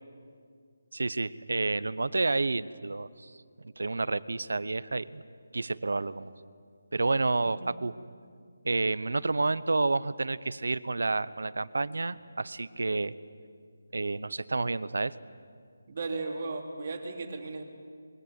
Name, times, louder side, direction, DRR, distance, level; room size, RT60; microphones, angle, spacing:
voice 1, 0.9-3.3 3.8-5.2 5.5-6.3 6.9-7.9 8.6-13.1 13.9-15.1, right 3 dB, 80° right, 17 dB, 0.9 m, -29 dB
voice 2, 15.9-17.6, right 3 dB, 30° right, 2 dB, 2.5 m, -36 dB
24.5 x 22.5 x 8.3 m, 2.2 s
hypercardioid pair, 180°, 0 cm